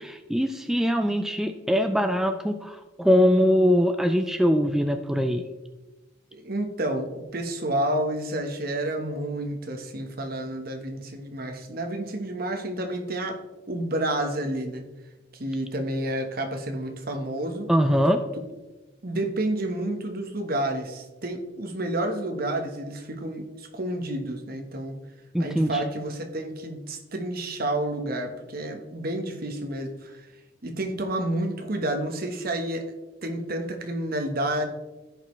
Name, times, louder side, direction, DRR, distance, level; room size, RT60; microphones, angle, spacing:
voice 1, 0.0-5.5 17.7-18.2 25.3-25.8, equal, ahead, 6 dB, 0.3 m, -22 dB
voice 2, 6.3-13.4 13.7-14.8 15.3-17.7 19.0-25.0 25.4-30.2 30.6-32.9 33.2-34.6, right 1 dB, 55° right, 4 dB, 1.2 m, -30 dB
15.0 x 5.3 x 3.1 m, 1.1 s
head